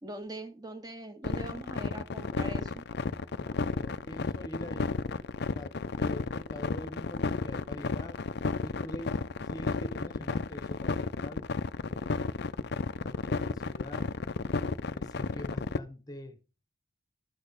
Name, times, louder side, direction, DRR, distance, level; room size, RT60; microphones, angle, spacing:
voice 1, 0.0-2.8, right 1 dB, 20° right, 1.5 m, -42 dB
sound 1, 1.2-15.8, left 4 dB, 50° left, 0.5 m, -32 dB
voice 2, 3.4-4.9 5.5-8.2 8.6-11.5 11.8-12.3 13.0-14.1 14.9-16.4, left 1 dB, 20° left, 1.2 m, -45 dB
11.5 x 6.3 x 5.0 m
head